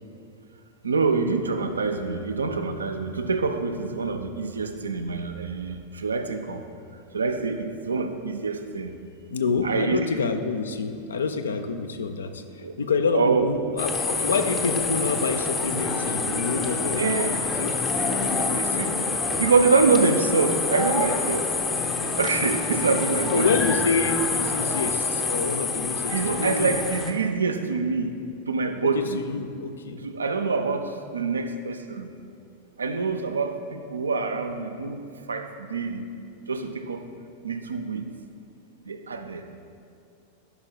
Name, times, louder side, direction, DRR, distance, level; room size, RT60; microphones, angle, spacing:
voice 1, 0.8-5.8 6.0-6.6 7.1-8.1 8.4-8.9 9.6-10.0 12.6-12.7 13.1-13.5 17.0-17.3 18.5-19.0 19.4-21.4 22.2-23.5 26.1-28.1 28.5-29.2 30.0-30.8 31.1-32.0 32.8-35.0 35.3-35.4 35.7-36.0 36.5-37.0 37.4-38.0 38.9-39.4, right 4 dB, 75° right, 6 dB, 0.4 m, -25 dB
voice 2, 9.3-17.0 17.6-17.7 18.3-18.8 23.3-26.8 28.8-30.0, left 4 dB, 70° left, 7 dB, 0.4 m, -27 dB
sound 1, 13.8-27.1, left 4 dB, 20° left, 0.6 m, -27 dB
11.0 x 5.5 x 2.2 m, 2.5 s
figure-of-eight pair, 90°, 0 cm